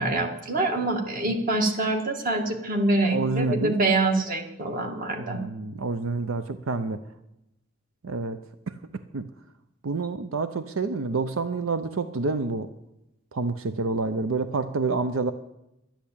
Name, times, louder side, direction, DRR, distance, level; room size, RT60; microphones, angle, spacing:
voice 1, 0.0-5.4, right 2 dB, 45° right, 4 dB, 1.9 m, -25 dB
voice 2, 3.1-3.8 5.2-7.0 8.0-9.3 9.8-12.7 13.3-15.3, right 3 dB, 80° right, 11 dB, 0.6 m, -28 dB
12.0 x 10.5 x 8.6 m, 0.89 s
head